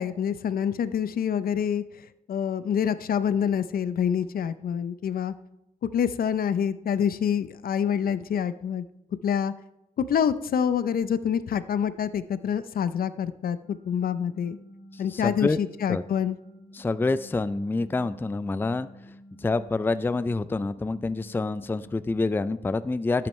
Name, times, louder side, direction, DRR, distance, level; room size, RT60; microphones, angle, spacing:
voice 1, 0.0-5.3 5.9-8.8 9.2-9.5 10.0-14.6 15.0-16.4, left 8 dB, 65° left, 14 dB, 0.5 m, -26 dB
sound 1, 13.6-22.5, equal, 45° left, 3.0 m, -50 dB
voice 2, 14.9-15.6 15.9-16.0 16.7-18.9 19.4-23.3, left 3 dB, 15° left, 14 dB, 0.4 m, -27 dB
13.5 x 8.7 x 3.2 m, 0.88 s
cardioid pair, 90°, 16 cm